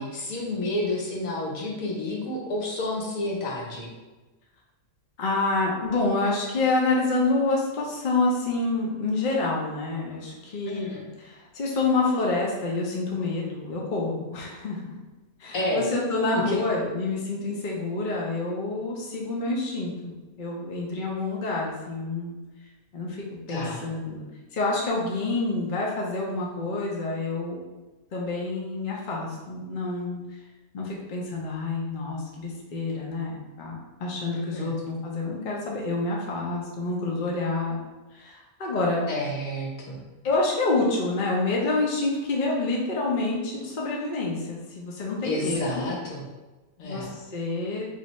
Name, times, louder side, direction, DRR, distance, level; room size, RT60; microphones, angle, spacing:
voice 1, 0.0-3.9 10.7-11.0 15.5-15.8 16.5-16.6 23.5-23.8 34.3-34.7 39.1-40.0 45.2-46.2 46.8-47.1, left 1 dB, 70° left, -2 dB, 1.2 m, -30 dB
voice 2, 5.2-10.9 11.2-14.9 15.4-22.3 22.9-24.3 24.5-27.6 28.1-30.2 30.7-37.8 38.1-39.1 40.2-45.9 46.8-47.9, left 3 dB, 45° left, -3 dB, 0.7 m, -28 dB
3.2 x 2.8 x 4.1 m, 1.2 s
omnidirectional pair, 1.5 m